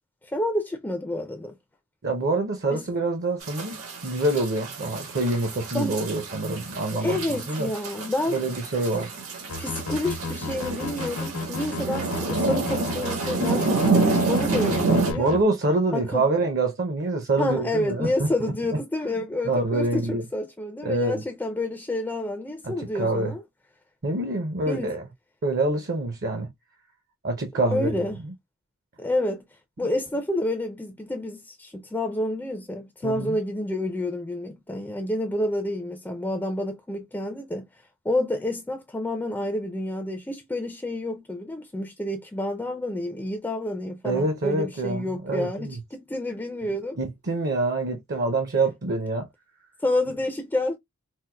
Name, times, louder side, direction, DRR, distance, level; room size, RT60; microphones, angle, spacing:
voice 1, 0.2-1.5 2.7-2.8 5.7-6.0 6.9-8.4 9.6-15.5 15.9-16.2 17.4-23.4 24.7-25.0 27.7-28.2 29.0-29.4 29.8-37.7 38.0-47.0 49.8-50.8, left 1 dB, 10° left, 0.3 m, -29 dB
voice 2, 2.0-3.8 4.0-7.7 8.3-9.2 15.2-18.5 19.4-20.3 20.8-21.2 22.6-23.3 24.0-25.0 25.4-26.5 27.2-28.3 33.0-33.4 44.0-45.8 47.0-49.3, right 2 dB, 50° right, 0.6 m, -26 dB
sound 1, 3.4-15.1, right 3 dB, 80° right, 1.4 m, -28 dB
sound 2, 9.5-15.4, left 3 dB, 80° left, 0.8 m, -33 dB
4.4 x 2.0 x 2.2 m
head